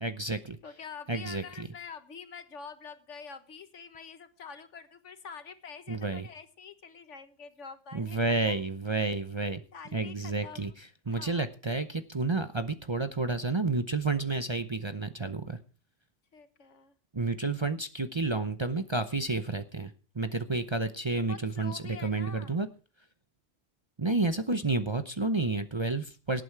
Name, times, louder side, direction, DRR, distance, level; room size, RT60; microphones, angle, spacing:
voice 1, 0.0-0.6 1.1-1.4 5.9-6.3 7.9-9.6 9.9-10.7 11.1-15.6 17.1-22.7 24.0-26.4, right 3 dB, 30° right, 9 dB, 0.7 m, -30 dB
voice 2, 0.6-8.2 8.4-8.6 9.7-10.7 11.1-11.5 16.3-16.9 21.2-22.6, left 6 dB, 80° left, 10 dB, 1.7 m, -46 dB
18.0 x 8.9 x 4.7 m, 0.36 s
omnidirectional pair, 1.2 m